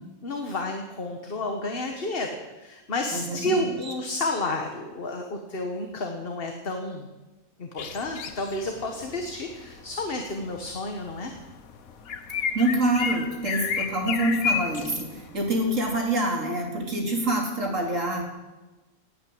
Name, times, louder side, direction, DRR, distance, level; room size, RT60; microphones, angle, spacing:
voice 1, 0.2-7.1 7.6-11.4, left 2 dB, 45° left, 4 dB, 1.5 m, -31 dB
voice 2, 3.1-3.9 12.5-18.2, right 1 dB, 65° right, 1 dB, 3.5 m, -26 dB
sound 1, 7.8-16.0, left 6 dB, 90° left, 1.5 m, -33 dB
18.0 x 8.8 x 7.8 m, 1.1 s
omnidirectional pair, 1.4 m